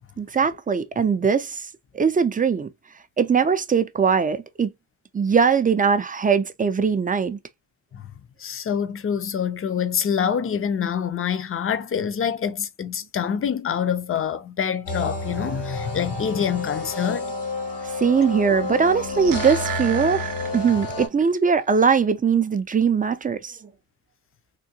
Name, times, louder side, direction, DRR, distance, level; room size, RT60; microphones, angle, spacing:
voice 1, 0.2-1.7 1.9-2.7 3.2-4.7 5.1-7.4 17.8-23.6, right 6 dB, 20° right, 0.3 m, -21 dB
voice 2, 8.4-17.3, left 7 dB, 35° left, 0.5 m, -26 dB
sound 1, 14.8-21.1, left 2 dB, 80° left, 2.1 m, -30 dB
sound 2, 18.8-21.3 21.6-21.7, right 12 dB, 55° right, 0.6 m, -34 dB
3.7 x 2.6 x 2.7 m
wide cardioid pair, 150°, 40 cm